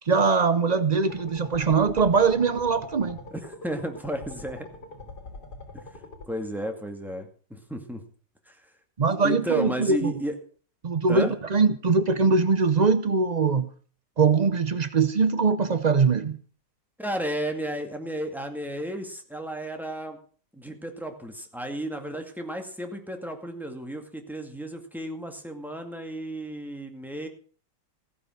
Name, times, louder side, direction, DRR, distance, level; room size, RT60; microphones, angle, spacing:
voice 1, 0.1-3.2 9.0-10.1 10.8-13.7 14.2-16.4, right 4 dB, 90° right, 12 dB, 0.3 m, -22 dB
sound 1, 1.1-6.3, left 2 dB, 60° left, 4.3 m, -43 dB
voice 2, 3.3-4.7 5.7-5.8 6.3-8.0 8.5-8.6 9.2-10.4 11.1-11.3 17.0-20.2 20.5-27.3, right 1 dB, ahead, 4 dB, 2.1 m, -33 dB
15.5 x 9.6 x 6.5 m, 0.42 s
omnidirectional pair, 2.0 m